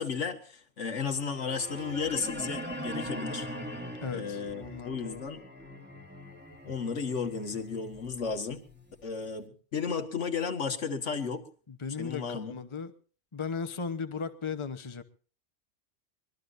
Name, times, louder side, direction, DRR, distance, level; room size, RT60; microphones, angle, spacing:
voice 1, 0.0-3.5 4.1-5.4 6.6-8.6 9.0-11.5 12.0-12.6, left 5 dB, 85° left, 1.9 m, -34 dB
sound 1, 1.1-9.2, equal, 10° right, 2.5 m, -41 dB
voice 2, 4.0-5.2 11.7-12.9 13.3-15.0, left 5 dB, 25° left, 1.0 m, -36 dB
24.0 x 20.5 x 2.6 m
omnidirectional pair, 1.2 m